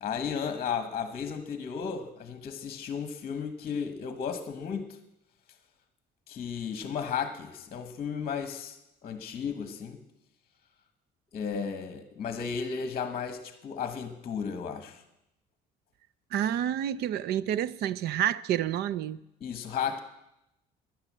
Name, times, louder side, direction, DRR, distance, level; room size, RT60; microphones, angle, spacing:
voice 1, 0.0-4.9 6.3-8.8 9.0-10.0 11.3-15.0 19.4-20.0, left 6 dB, 35° left, 1.2 m, -34 dB
voice 2, 16.3-19.2, right 10 dB, 65° right, 0.6 m, -29 dB
16.5 x 11.0 x 7.4 m
cardioid pair, 155°, 18 cm